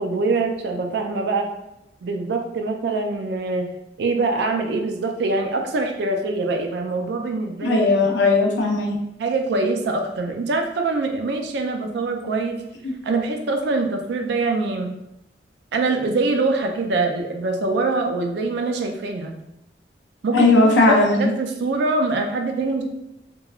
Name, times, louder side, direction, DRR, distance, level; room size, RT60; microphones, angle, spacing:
voice 1, 0.0-1.5 2.0-3.7 4.0-7.9 9.2-12.6 13.0-14.9 15.7-19.4 20.2-20.5 20.9-22.8, right 3 dB, 65° right, 4 dB, 0.4 m, -24 dB
voice 2, 7.6-9.0 20.3-21.3, left 3 dB, 80° left, 0 dB, 0.5 m, -17 dB
2.9 x 2.2 x 2.3 m, 0.87 s
head